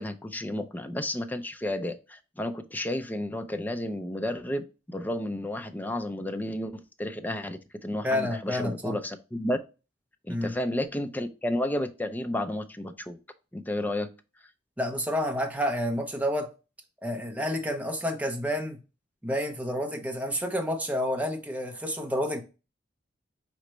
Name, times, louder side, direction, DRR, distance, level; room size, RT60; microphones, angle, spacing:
voice 1, 0.0-9.6 10.2-13.2 13.5-14.1, left 1 dB, 10° left, 0.4 m, -32 dB
voice 2, 8.0-8.9 10.3-10.5 14.8-16.5 17.0-18.8 19.2-22.4, left 1 dB, 10° right, 0.8 m, -29 dB
5.0 x 3.2 x 3.1 m
head